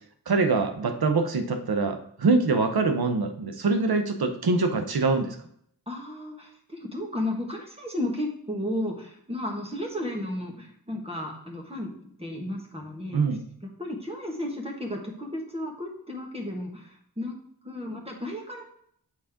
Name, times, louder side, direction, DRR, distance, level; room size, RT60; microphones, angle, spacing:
voice 1, 0.3-5.4 13.1-13.4, right 3 dB, 90° right, 6 dB, 0.9 m, -24 dB
voice 2, 5.9-11.9 12.2-13.2 13.6-17.4 17.6-18.7, left 1 dB, 15° right, 0 dB, 1.5 m, -33 dB
7.4 x 4.2 x 3.7 m, 0.67 s
wide cardioid pair, 75°, 36 cm